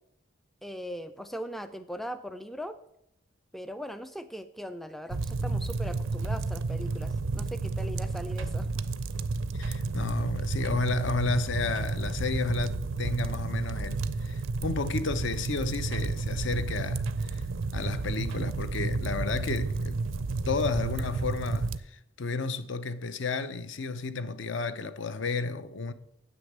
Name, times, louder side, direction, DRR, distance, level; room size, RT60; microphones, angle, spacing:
voice 1, 0.6-2.8 3.5-8.7, equal, ahead, 0.3 m, -39 dB
sound 1, 5.1-21.8, right 3 dB, 75° right, 0.5 m, -31 dB
voice 2, 9.5-17.4 17.7-20.1 20.5-25.9, left 4 dB, 60° left, 0.6 m, -32 dB
7.9 x 6.4 x 7.3 m
head